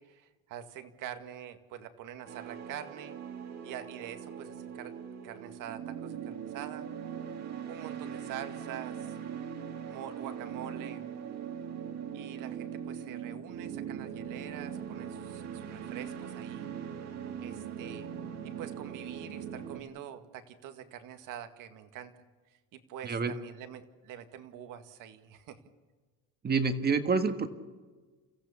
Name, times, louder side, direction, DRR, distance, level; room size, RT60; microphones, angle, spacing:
voice 1, 0.0-3.1 3.6-4.9 5.2-6.9 7.7-9.1 9.9-11.0 12.1-16.7 17.4-18.1 18.4-22.1 22.7-25.6, right 10 dB, 65° right, 8 dB, 2.0 m, -45 dB
sound 1, 2.3-19.8, right 8 dB, 50° right, 2.3 m, -41 dB
voice 2, 26.4-27.5, right 4 dB, 30° right, 8 dB, 1.7 m, -27 dB
29.5 x 15.5 x 7.1 m, 1.4 s
cardioid pair, 125°, 34 cm